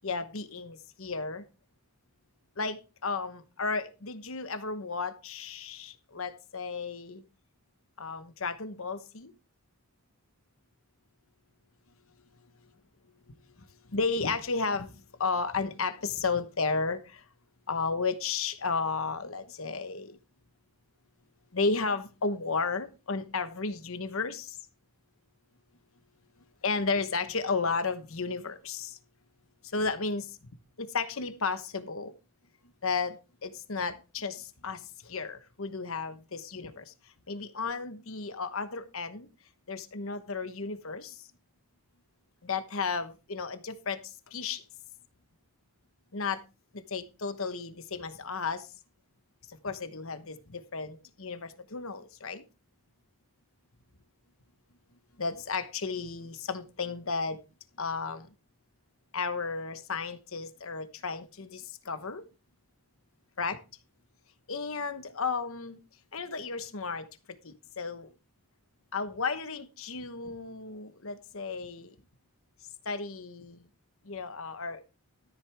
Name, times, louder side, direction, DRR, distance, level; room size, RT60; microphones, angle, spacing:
voice 1, 0.0-1.4 2.6-7.2 8.0-9.3 13.9-14.9 15.2-17.0 17.7-20.1 21.5-24.5 26.6-28.9 29.7-30.3 30.8-32.1 32.8-33.2 33.4-34.8 35.1-36.8 37.3-39.3 39.7-41.1 42.4-44.0 44.3-44.6 46.1-46.4 46.9-48.6 49.6-52.4 55.2-57.4 57.8-58.3 59.1-62.2 63.4-63.6 64.5-65.8 66.1-67.0 67.4-68.1 68.9-71.9 72.9-73.6 74.1-74.8, left 4 dB, 70° left, 1.1 m, -33 dB
13.5 x 7.9 x 3.5 m
head